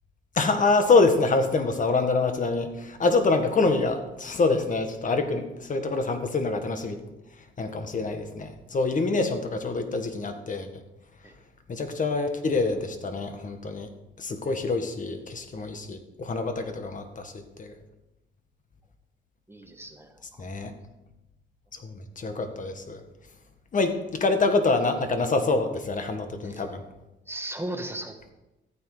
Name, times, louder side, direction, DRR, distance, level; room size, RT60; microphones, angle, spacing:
voice 1, 0.4-7.0 7.6-10.7 11.7-13.9 14.2-17.3 17.6-17.7 20.4-20.7 21.8-23.0 23.7-26.8, left 3 dB, 40° left, 7 dB, 1.8 m, -26 dB
voice 2, 19.5-20.4 26.4-26.6 27.3-28.3, right 1 dB, 10° right, 4 dB, 1.5 m, -37 dB
13.5 x 9.4 x 5.1 m, 0.98 s
cardioid pair, 90°, 20 cm